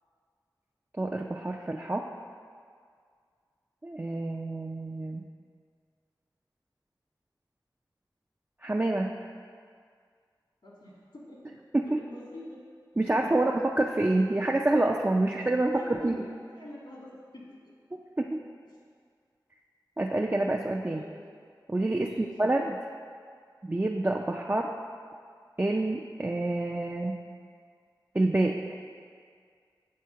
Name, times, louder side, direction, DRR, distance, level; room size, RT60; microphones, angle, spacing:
voice 1, 1.0-2.1 3.8-5.2 8.6-9.2 11.7-12.0 13.0-16.2 18.2-18.4 20.0-21.0 21.7-22.8 23.6-24.7 25.6-27.2 28.1-28.8, right 2 dB, 25° right, 0 dB, 0.4 m, -27 dB
voice 2, 10.6-11.5 11.8-12.6 13.3-13.4 15.4-17.7 20.7-21.2 21.9-22.4, left 1 dB, 80° left, -5 dB, 1.8 m, -46 dB
7.5 x 3.6 x 5.7 m, 2.1 s
wide cardioid pair, 55°, 8 cm